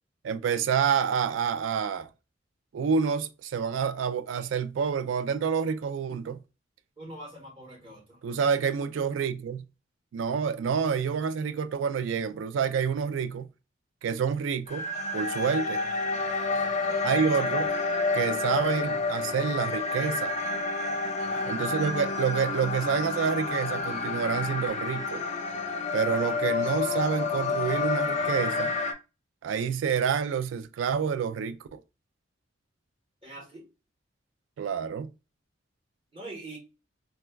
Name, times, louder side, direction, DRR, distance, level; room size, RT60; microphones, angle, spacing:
voice 1, 0.2-2.1 2.7-6.4 8.2-9.7 10.1-13.5 14.0-14.9 15.1-15.8 17.0-17.7 18.1-20.3 21.5-25.2 25.9-28.8 29.4-31.8 34.6-35.1, right 6 dB, 85° right, 0.3 m, -28 dB
voice 2, 7.0-8.2 16.5-17.0 21.3-21.6 33.2-33.7 36.1-36.6, right 1 dB, 30° right, 1.3 m, -44 dB
sound 1, 14.7-28.9, left 3 dB, 35° left, 0.4 m, -29 dB
4.2 x 2.2 x 2.2 m
head